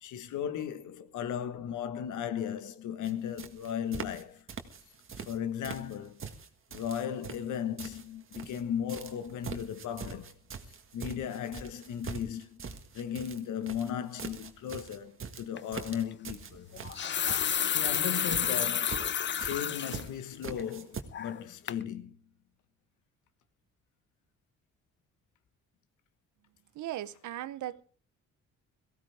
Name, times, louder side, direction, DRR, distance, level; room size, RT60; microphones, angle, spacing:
voice 1, 0.0-4.4 5.2-6.2 6.7-10.4 10.9-16.7 17.6-19.1 19.4-22.2, left 9 dB, 80° left, 1.5 m, -36 dB
sound 1, 3.0-3.1 3.4-4.2 4.5-5.4 5.6-8.6 8.9-21.0, right 6 dB, 45° right, 1.7 m, -43 dB
sound 2, 15.6-15.7 16.7-20.1 20.5-20.6 21.1-21.4 21.7-21.8, left 8 dB, 40° left, 0.6 m, -30 dB
voice 2, 26.7-27.8, right 13 dB, 70° right, 0.9 m, -37 dB
18.0 x 15.5 x 3.5 m
cardioid pair, 90°, 30 cm